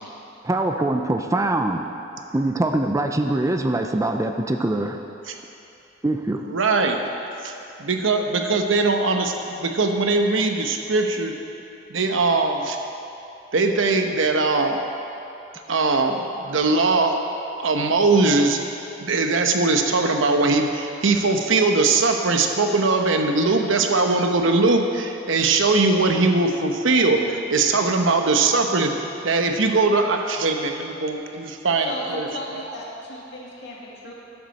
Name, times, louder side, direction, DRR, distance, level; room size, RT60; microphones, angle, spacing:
voice 1, 0.4-1.8 2.3-5.0 6.0-6.4, right 2 dB, 15° right, 5 dB, 0.5 m, -23 dB
voice 2, 6.4-7.0 7.4-7.5 7.8-11.3 11.9-12.8 13.5-14.8 15.7-17.2 17.6-18.6 19.0-28.9 29.2-32.7, right 3 dB, 85° right, 4 dB, 1.0 m, -21 dB
voice 3, 31.8-34.1, left 1 dB, 65° left, -4 dB, 2.3 m, -35 dB
13.0 x 11.0 x 4.2 m, 2.8 s
head